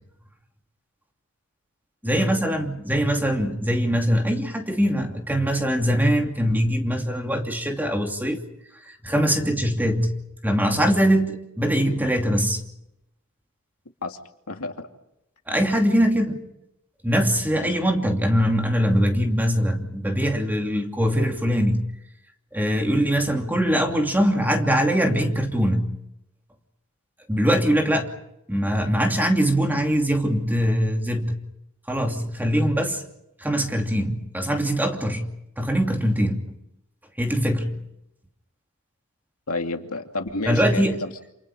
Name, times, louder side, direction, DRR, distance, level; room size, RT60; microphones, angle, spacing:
voice 1, 2.0-8.4 8.8-10.2 10.4-12.6 15.5-16.4 17.0-21.8 22.5-26.0 27.3-28.1 28.5-31.4 31.9-33.0 33.4-35.3 35.6-36.6 37.2-37.8 40.5-41.0, equal, 10° right, 3 dB, 2.7 m, -22 dB
voice 2, 14.5-14.9 17.6-17.7 39.5-41.1, left 3 dB, 70° left, 4 dB, 2.5 m, -31 dB
29.0 x 28.5 x 5.0 m, 0.83 s
head